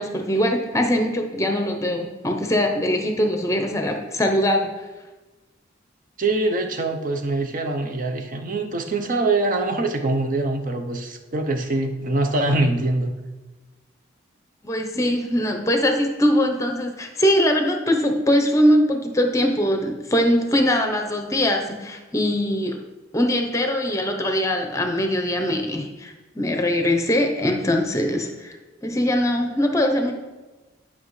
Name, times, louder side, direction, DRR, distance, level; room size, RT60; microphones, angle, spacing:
voice 1, 0.0-4.7 14.6-22.8 23.1-28.6 28.8-30.1, equal, 15° left, 4 dB, 0.8 m, -22 dB
voice 2, 6.2-13.1, right 2 dB, 45° right, 5 dB, 0.7 m, -23 dB
10.5 x 5.6 x 3.2 m, 1.2 s
head